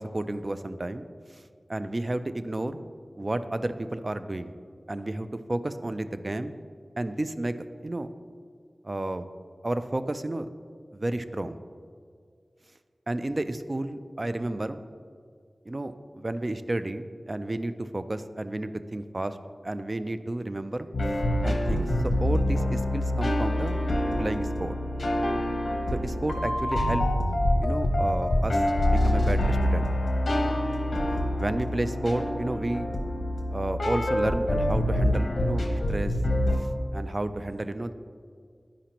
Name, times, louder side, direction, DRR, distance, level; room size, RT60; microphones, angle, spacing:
voice 1, 0.0-1.4 1.7-2.8 3.2-4.5 4.9-6.6 7.0-7.6 7.8-8.1 8.8-9.3 9.6-10.5 10.9-11.6 13.1-14.8 15.7-19.4 19.6-20.9 21.4-21.9 22.2-23.8 24.2-24.7 25.9-27.0 27.6-29.9 31.4-32.9 33.5-36.2 36.5-37.9, right 1 dB, 35° right, 11 dB, 0.3 m, -31 dB
sound 1, 20.9-36.6, left 1 dB, 65° left, 0.9 m, -26 dB
11.5 x 5.0 x 2.9 m, 2.1 s
wide cardioid pair, 80°, 0 cm